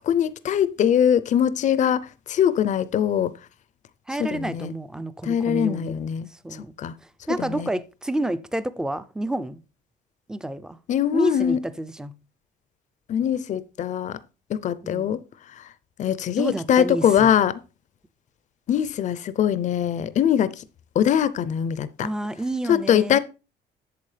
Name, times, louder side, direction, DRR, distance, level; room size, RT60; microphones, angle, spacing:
voice 1, 0.1-3.3 4.2-4.7 5.2-6.9 7.4-7.7 10.9-11.6 13.1-14.2 14.5-15.2 15.6-15.7 16.0-17.6 18.7-20.6 20.9-22.1 22.7-23.2, left 9 dB, 45° left, 0.5 m, -22 dB
voice 2, 4.1-5.9 6.3-6.7 7.3-9.6 10.3-10.8 11.1-12.2 14.8-15.2 16.4-17.3 22.0-23.2, right 1 dB, 5° right, 0.5 m, -29 dB
8.5 x 6.9 x 3.3 m
cardioid pair, 110°, 17 cm